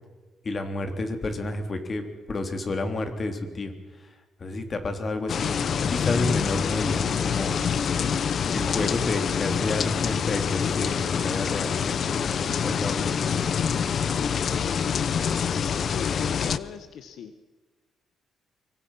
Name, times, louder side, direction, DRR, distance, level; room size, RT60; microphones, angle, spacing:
voice 1, 0.4-4.1 4.4-5.6 5.9-7.6 8.5-13.2, left 2 dB, 35° left, 6 dB, 3.4 m, -30 dB
sound 1, 5.3-16.6, left 7 dB, 50° left, 0.9 m, -26 dB
voice 2, 14.6-17.3, left 7 dB, 70° left, 9 dB, 1.5 m, -38 dB
24.5 x 24.5 x 5.8 m, 1.3 s
cardioid pair, 125°, 0 cm